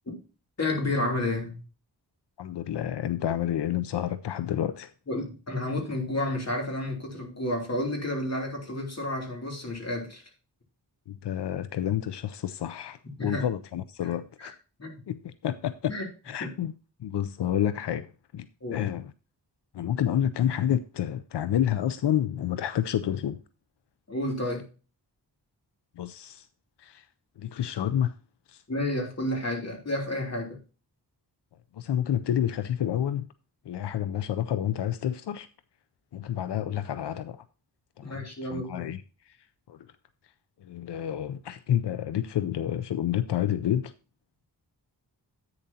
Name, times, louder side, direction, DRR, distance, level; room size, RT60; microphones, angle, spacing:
voice 1, 0.6-1.6 5.1-10.2 13.2-13.4 14.4-14.5 14.8-15.0 15.9-16.0 16.4-16.5 18.6-18.8 24.1-24.6 28.7-30.6 38.0-38.9, left 1 dB, 40° left, 3.0 m, -31 dB
voice 2, 2.4-4.9 11.1-14.5 15.1-15.9 16.2-16.7 17.0-19.1 19.7-23.4 26.0-26.5 26.8-27.1 27.4-28.2 28.5-28.6 31.7-33.3 33.6-35.5 36.1-37.4 38.0-39.4 39.7-39.9 40.6-43.9, left 10 dB, 90° left, 0.6 m, -29 dB
10.5 x 8.8 x 2.8 m
wide cardioid pair, 110°, 40 cm